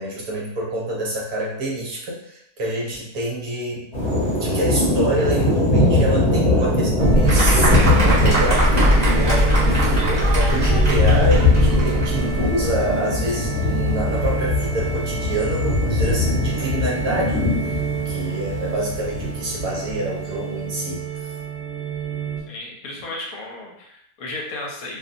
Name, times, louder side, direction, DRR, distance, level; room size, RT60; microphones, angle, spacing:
voice 1, 0.0-17.8 18.0-21.0, right 1 dB, 70° right, -3 dB, 1.2 m, -27 dB
sound 1, 3.9-20.0, left 2 dB, 35° left, 0.7 m, -21 dB
sound 2, 7.0-22.4, right 1 dB, 45° right, 1.0 m, -24 dB
Fireworks, 7.2-13.0, right 2 dB, 10° right, 1.2 m, -25 dB
voice 2, 22.5-25.0, left 2 dB, 70° left, -1 dB, 1.0 m, -34 dB
2.7 x 2.6 x 2.5 m, 0.74 s
omnidirectional pair, 1.7 m